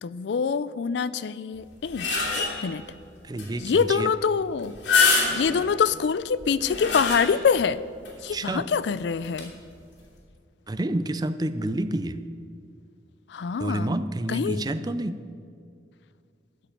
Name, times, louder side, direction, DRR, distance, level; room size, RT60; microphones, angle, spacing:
voice 1, 0.0-2.1 2.4-2.8 3.6-4.8 5.3-7.8 8.2-9.5 13.3-13.9 14.3-14.6, left 6 dB, 75° left, 17 dB, 0.4 m, -25 dB
sound 1, 1.6-2.8 3.4-3.5 3.8-3.9 4.6-5.7 6.4-7.6 8.0-8.1 9.2-9.4, left 4 dB, 90° left, 2.9 m, -25 dB
voice 2, 3.2-4.1 8.3-8.7 10.7-12.2 13.6-15.2, right 1 dB, 25° right, 12 dB, 0.4 m, -29 dB
13.0 x 5.3 x 8.6 m, 2.3 s
head